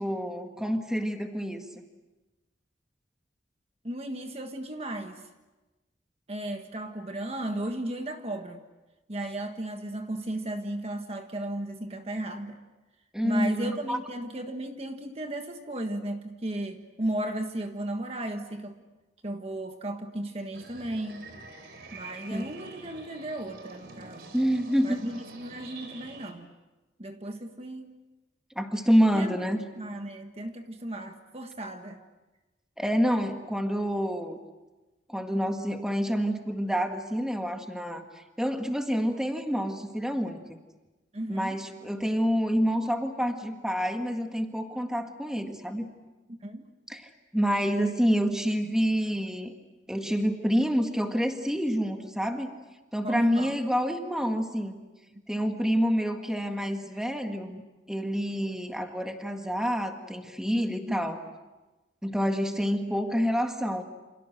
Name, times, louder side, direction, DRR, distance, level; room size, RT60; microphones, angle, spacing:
voice 1, 0.0-1.7 13.1-14.0 22.3-22.4 24.3-25.0 28.6-29.6 32.8-34.4 35.1-40.6 41.3-45.9 46.9-49.5 49.9-52.5 52.9-54.8 55.3-57.6 57.9-61.2 62.0-63.8, equal, 5° right, 4 dB, 1.9 m, -28 dB
voice 2, 3.8-5.3 6.3-8.6 9.1-12.6 13.2-18.8 19.2-21.3 21.9-24.3 24.8-26.5 27.0-28.0 29.1-29.4 29.8-32.0 41.1-41.6 46.3-46.7 53.0-53.5 60.9-61.1, right 1 dB, 35° right, 5 dB, 1.5 m, -35 dB
sound 1, 20.5-26.3, right 3 dB, 65° right, 3.8 m, -47 dB
29.0 x 27.5 x 6.5 m, 1.1 s
head